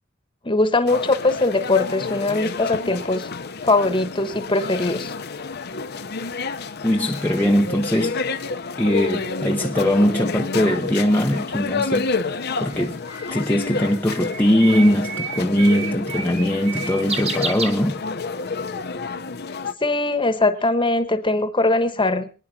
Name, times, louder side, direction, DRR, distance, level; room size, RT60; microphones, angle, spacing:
voice 1, 0.4-3.3 3.6-5.1 19.8-22.4, left 2 dB, 25° left, 1.3 m, -21 dB
sound 1, 0.9-19.7, left 4 dB, 55° left, 0.9 m, -29 dB
voice 2, 6.8-8.2 8.8-12.1 12.6-13.0 13.3-18.0, equal, 10° left, 0.8 m, -20 dB
Bird, 12.1-18.4, right 4 dB, 30° right, 1.9 m, -32 dB
26.0 x 10.0 x 2.8 m
head